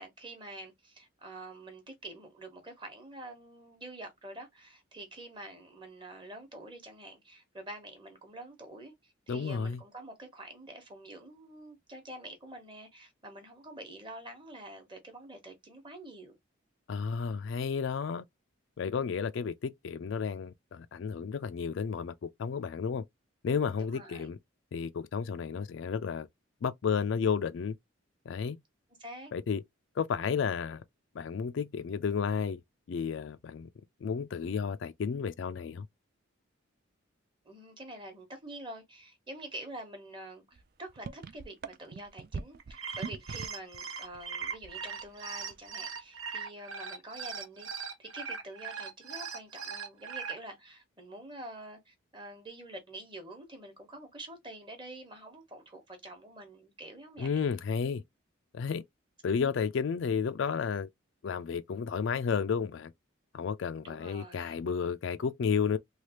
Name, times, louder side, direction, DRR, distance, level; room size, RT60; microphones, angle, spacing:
voice 1, 0.0-16.4 23.8-24.3 29.0-29.3 37.4-57.5 63.8-64.6, right 1 dB, 25° right, 1.0 m, -47 dB
voice 2, 9.3-9.8 16.9-18.2 18.8-23.0 23.4-24.4 24.7-26.3 26.6-27.8 28.3-28.6 29.3-29.6 30.0-30.8 31.1-32.6 32.9-33.7 34.0-35.9 57.2-58.0 58.5-58.8 59.2-60.9 61.2-62.9 63.3-65.8, left 6 dB, 65° left, 0.3 m, -32 dB
sound 1, 40.5-40.6 40.9-43.8 44.0-45.1 45.4-45.7, right 4 dB, 45° right, 0.4 m, -41 dB
sound 2, 42.6-50.3, right 6 dB, 85° right, 0.9 m, -39 dB
3.2 x 2.4 x 2.9 m
head